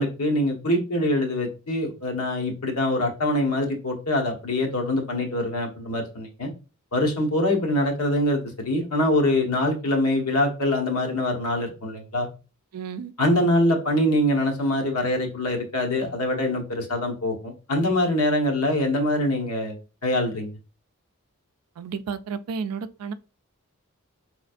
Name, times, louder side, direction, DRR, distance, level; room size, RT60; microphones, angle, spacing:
voice 1, 0.0-6.5 6.9-12.3 13.2-19.8 20.0-20.5, left 1 dB, 80° left, 1.0 m, -24 dB
voice 2, 12.7-13.1 21.8-23.1, right 6 dB, 85° right, 0.3 m, -32 dB
4.2 x 3.0 x 2.4 m
head